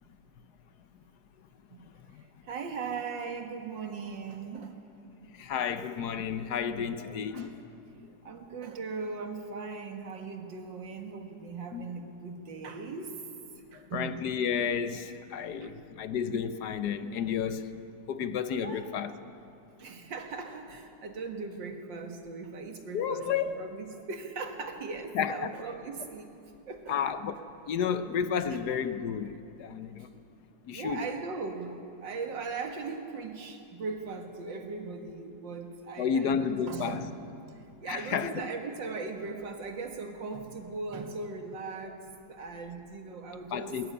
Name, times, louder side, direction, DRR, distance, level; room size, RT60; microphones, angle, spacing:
voice 1, 1.8-2.2 5.3-7.6 11.7-11.9 13.7-17.8 18.1-19.1 22.9-23.6 25.1-25.5 26.9-27.4 27.7-30.1 30.7-31.1 36.0-37.1 37.9-38.5 43.5-43.9, left 7 dB, 65° left, 1.3 m, -32 dB
voice 2, 2.4-4.8 7.3-7.5 8.2-13.2 13.7-14.1 15.6-15.7 18.2-18.4 18.6-18.9 19.8-26.3 26.7-27.1 30.0-30.2 30.7-37.2 37.8-42.0 42.3-43.8, right 4 dB, 85° right, 2.3 m, -39 dB
19.5 x 13.5 x 9.9 m
omnidirectional pair, 2.0 m